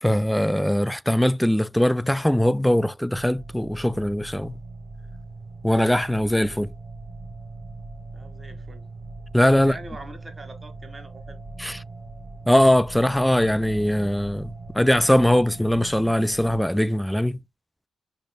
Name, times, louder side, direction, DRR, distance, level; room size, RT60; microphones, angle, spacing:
voice 1, 0.0-4.5 5.6-6.7 9.3-9.7 11.6-11.8 12.5-17.4, left 1 dB, 5° left, 0.3 m, -21 dB
sound 1, 3.1-16.6, right 3 dB, 65° right, 1.0 m, -40 dB
voice 2, 8.1-8.9 9.6-11.4, right 2 dB, 30° right, 1.7 m, -43 dB
6.3 x 3.1 x 2.2 m
supercardioid pair, 45°, 0 cm